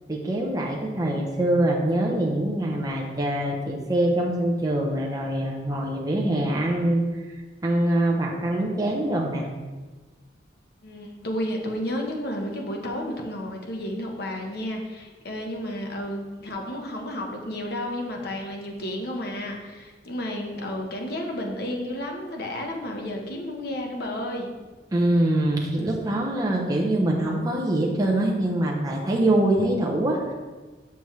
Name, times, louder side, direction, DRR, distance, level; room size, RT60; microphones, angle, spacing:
voice 1, 0.1-7.0 7.6-9.5 24.9-30.3, right 1 dB, 20° right, -2 dB, 0.8 m, -24 dB
voice 2, 10.8-24.5, left 1 dB, 55° left, 1 dB, 1.1 m, -32 dB
6.9 x 6.2 x 3.1 m, 1.3 s
head